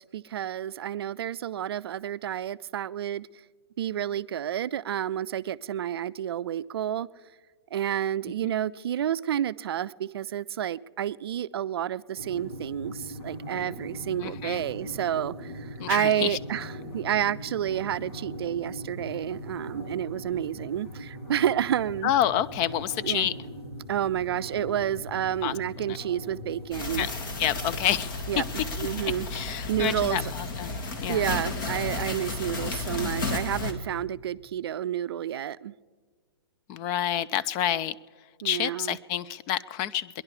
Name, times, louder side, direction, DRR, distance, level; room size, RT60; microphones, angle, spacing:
voice 1, 0.0-3.3 3.8-7.1 7.7-22.1 23.0-23.3 23.9-27.1 28.3-28.4 28.8-29.3 29.7-30.3 31.1-35.7 38.4-39.0, right 10 dB, 70° right, 0.4 m, -30 dB
sound 1, 12.2-26.7, equal, 80° left, 3.6 m, -40 dB
voice 2, 14.2-14.6 15.8-16.4 22.0-23.3 25.4-25.5 27.0-27.1 27.4-28.1 29.3-30.7 31.0-31.3 36.7-38.0 38.4-40.2, left 11 dB, 30° left, 0.3 m, -28 dB
Hamster Making a Nest, 26.7-33.7, left 3 dB, 55° left, 2.1 m, -32 dB
21.0 x 11.0 x 4.9 m
hypercardioid pair, 135°, 13 cm